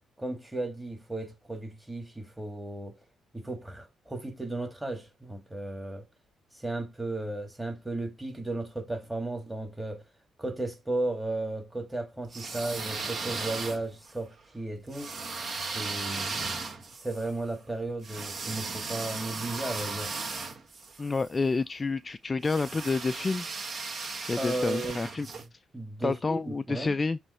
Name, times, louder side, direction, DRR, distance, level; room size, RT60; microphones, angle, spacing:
voice 1, 0.2-3.0 3.3-6.1 6.5-10.0 10.4-15.1 15.7-16.6 16.9-20.2 24.4-25.3 25.7-26.9, right 2 dB, 10° right, 2.1 m, -35 dB
sound 1, 12.2-14.1 14.9-21.3 22.4-25.4, right 4 dB, 50° right, 1.5 m, -36 dB
voice 2, 21.0-23.5 24.3-25.3 26.0-27.2, left 4 dB, 25° left, 0.3 m, -29 dB
7.6 x 3.1 x 4.2 m
cardioid pair, 90°, 0 cm